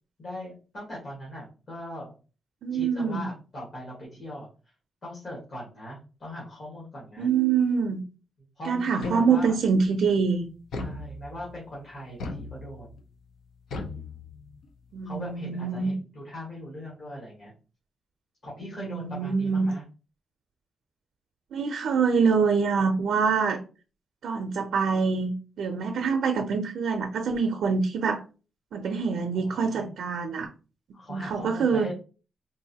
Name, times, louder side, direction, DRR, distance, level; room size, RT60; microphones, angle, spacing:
voice 1, 0.2-2.1 2.7-4.5 5.0-7.3 8.6-9.5 10.8-12.9 15.0-17.5 18.4-19.8 29.3-29.9 30.9-31.9, left 1 dB, 40° left, -6 dB, 1.5 m, -40 dB
voice 2, 2.6-3.3 7.2-8.0 8.6-10.5 14.9-15.9 18.6-19.7 21.5-23.6 24.2-25.3 25.6-28.2 28.7-30.5 31.1-31.9, right 5 dB, 70° right, 3 dB, 0.5 m, -25 dB
sound 1, 9.0-9.7 10.7-11.6 12.2-13.0 13.7-14.7, left 2 dB, 70° left, 0.6 m, -37 dB
3.8 x 2.6 x 2.7 m, 0.34 s
wide cardioid pair, 180°, 0 cm